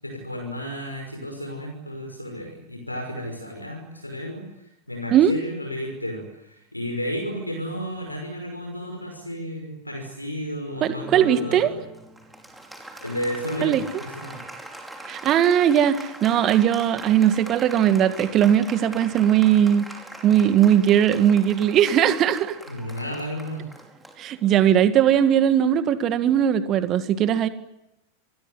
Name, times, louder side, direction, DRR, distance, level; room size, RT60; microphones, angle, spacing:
voice 1, 0.0-11.6 13.0-14.5 22.7-23.7, equal, 85° left, 3 dB, 5.9 m, -33 dB
Applause, 10.7-24.8, right 1 dB, 5° right, 5.0 m, -41 dB
voice 2, 10.8-11.7 13.6-13.8 15.1-19.9 20.2-22.6 24.2-27.5, right 10 dB, 35° right, 11 dB, 2.1 m, -19 dB
27.5 x 21.5 x 9.6 m, 0.87 s
figure-of-eight pair, 90°, 0 cm